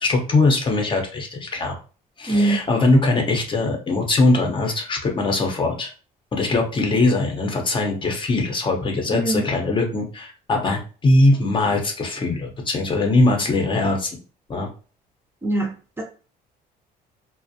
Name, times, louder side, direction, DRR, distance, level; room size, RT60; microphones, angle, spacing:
voice 1, 0.0-1.8 2.2-5.9 6.3-14.1 14.5-14.7, left 2 dB, 30° left, 2 dB, 0.6 m, -21 dB
voice 2, 2.3-2.6 9.1-9.5 15.4-16.0, right 2 dB, 15° right, 1 dB, 0.5 m, -22 dB
2.4 x 2.0 x 2.6 m, 0.36 s
cardioid pair, 110°, 17 cm